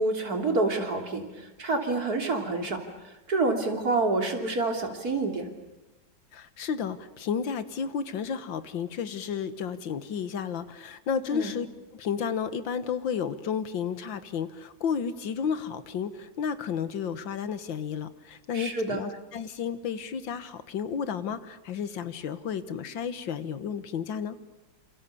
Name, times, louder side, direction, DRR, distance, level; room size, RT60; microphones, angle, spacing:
voice 1, 0.0-2.8 3.3-5.5 11.3-11.5 18.5-19.0, right 3 dB, 50° right, 4 dB, 3.7 m, -27 dB
voice 2, 6.3-11.7 11.9-24.4, left 7 dB, 80° left, 13 dB, 2.0 m, -32 dB
28.0 x 27.5 x 7.0 m, 1.0 s
omnidirectional pair, 2.1 m